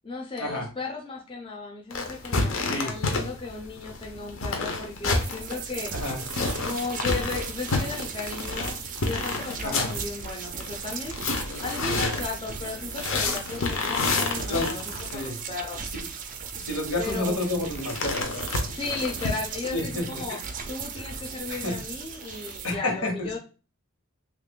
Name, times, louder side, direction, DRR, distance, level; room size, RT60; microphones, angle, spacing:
voice 1, 0.0-5.9 6.6-8.8 9.0-11.2 11.6-15.8 17.0-17.4 18.7-20.4 20.7-23.4, left 3 dB, 25° left, 0 dB, 0.5 m, -35 dB
sound 1, 1.9-15.3 17.0-19.3, left 3 dB, 65° left, 0.7 m, -30 dB
voice 2, 2.7-3.2 5.9-6.2 9.6-9.9 11.9-12.1 14.5-15.4 15.9-16.1 16.6-18.3 19.7-20.4 21.0-21.1 21.5-21.8 22.6-23.4, left 1 dB, 85° left, 1 dB, 1.2 m, -30 dB
sound 2, 5.0-22.7, right 6 dB, 35° right, 0.4 m, -37 dB
3.0 x 2.4 x 3.6 m, 0.34 s
head